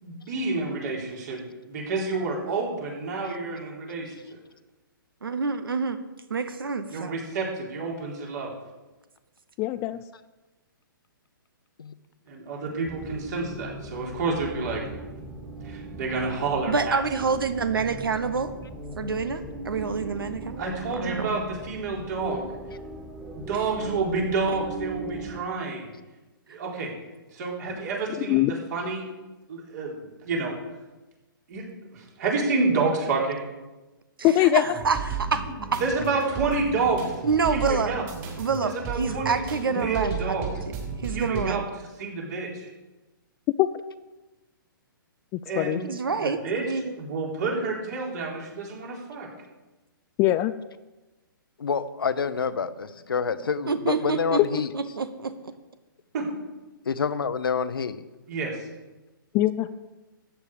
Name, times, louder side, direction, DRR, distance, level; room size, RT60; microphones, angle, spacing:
voice 1, 0.0-4.4 6.9-8.5 12.3-14.8 15.6-17.0 20.6-22.5 23.3-25.9 26.5-26.9 27.3-29.1 29.5-30.5 31.5-31.6 31.9-33.4 35.8-37.2 37.5-38.0 38.6-39.4 39.7-40.6 41.1-41.6 42.0-42.7 45.5-45.8 46.2-46.6 47.0-49.3 56.1-56.3 58.3-58.7, right 3 dB, 50° right, -1 dB, 3.8 m, -29 dB
voice 2, 5.2-6.0 6.3-7.2 16.7-18.5 19.0-20.6 20.9-21.4 34.2-35.4 35.7-35.8 37.2-37.9 38.4-40.7 41.0-41.6 45.9-46.9 53.7-54.4 54.7-55.4, right 5 dB, 85° right, 11 dB, 1.0 m, -27 dB
voice 3, 9.6-10.0 28.2-28.5 34.2-34.6 43.6-43.7 45.3-45.8 50.2-50.5 54.4-54.5 59.3-59.7, left 15 dB, 20° left, 13 dB, 0.3 m, -21 dB
sound 1, 12.8-25.4, right 2 dB, 10° right, 2.0 m, -39 dB
sound 2, 34.6-41.4, right 5 dB, 30° right, 3.7 m, -34 dB
voice 4, 51.6-54.7 56.9-58.0, left 6 dB, 80° left, 13 dB, 0.8 m, -27 dB
14.0 x 8.9 x 4.9 m, 1.1 s
hypercardioid pair, 135°, 12 cm